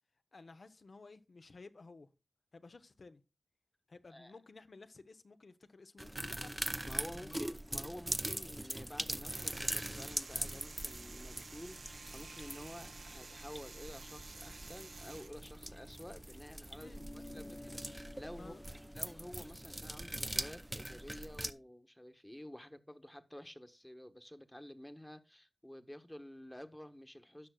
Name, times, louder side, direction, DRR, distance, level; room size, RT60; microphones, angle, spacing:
voice 1, 0.3-2.1 2.5-3.2 3.9-6.6 7.2-7.5 16.7-17.6 18.3-18.6, left 3 dB, 70° left, 0.9 m, -55 dB
sound 1, 6.0-21.5, right 1 dB, 15° right, 0.6 m, -42 dB
voice 2, 6.8-18.5 18.9-27.5, left 1 dB, 10° left, 1.2 m, -51 dB
sound 2, 9.3-15.3, right 4 dB, 80° right, 0.7 m, -52 dB
sound 3, 16.8-21.6, left 2 dB, 35° left, 0.7 m, -55 dB
16.5 x 6.2 x 2.3 m
cardioid pair, 50°, 0 cm